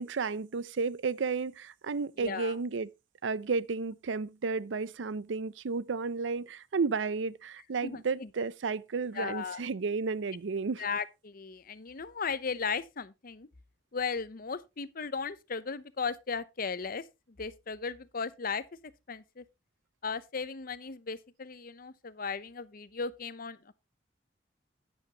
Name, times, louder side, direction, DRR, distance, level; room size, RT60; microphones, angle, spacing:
voice 1, 0.0-2.9 3.2-10.8, right 4 dB, 90° right, 0.5 m, -32 dB
voice 2, 2.2-2.5 7.8-8.3 9.1-9.6 10.8-13.5 13.9-17.0 17.4-18.6 19.1-19.4 20.0-23.6, left 5 dB, 50° left, 0.8 m, -36 dB
10.5 x 10.0 x 2.9 m
head